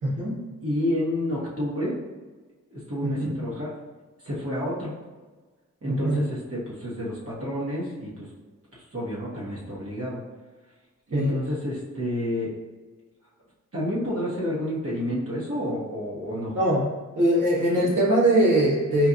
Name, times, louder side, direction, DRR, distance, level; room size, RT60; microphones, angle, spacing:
voice 1, 0.0-0.4 3.0-3.4 5.9-6.2 11.1-11.4 16.5-16.8 17.2-19.1, right 1 dB, 85° right, -5 dB, 1.1 m, -22 dB
voice 2, 0.6-2.0 2.7-3.8 4.2-4.9 5.8-8.3 8.7-10.2 11.1-12.5 13.7-16.6, left 1 dB, 50° right, -6 dB, 1.1 m, -29 dB
4.3 x 2.3 x 2.6 m, 1.3 s
cardioid pair, 70°, 31 cm